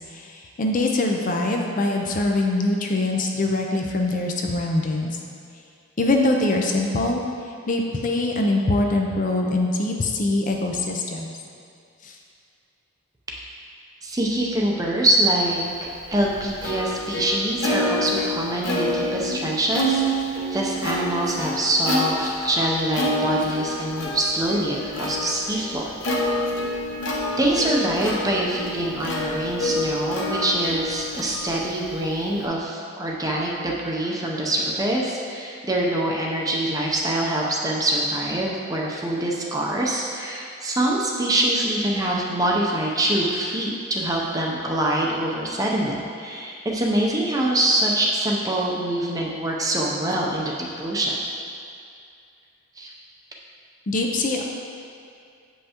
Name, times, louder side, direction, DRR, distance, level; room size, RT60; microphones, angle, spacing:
voice 1, 0.1-5.1 6.0-11.4 12.0-12.2 53.9-54.4, left 2 dB, 40° left, 1 dB, 0.5 m, -23 dB
voice 2, 14.0-26.2 27.4-51.2 52.8-52.9, right 1 dB, 15° right, -3 dB, 0.6 m, -24 dB
Plucked string instrument, 15.7-32.5, equal, 60° left, 1.0 m, -28 dB
7.7 x 5.5 x 2.9 m, 2.4 s
head